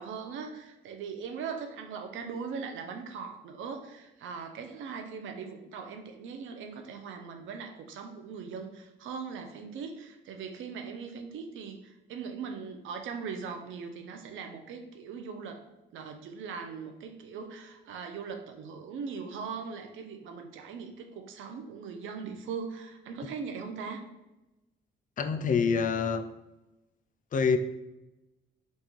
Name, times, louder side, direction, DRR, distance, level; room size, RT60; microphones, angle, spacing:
voice 1, 0.0-24.1, right 5 dB, 80° right, 6 dB, 0.6 m, -40 dB
voice 2, 25.2-26.2 27.3-27.6, left 5 dB, 40° left, 8 dB, 0.4 m, -26 dB
5.3 x 2.3 x 3.1 m, 1.0 s
cardioid pair, 90°, 20 cm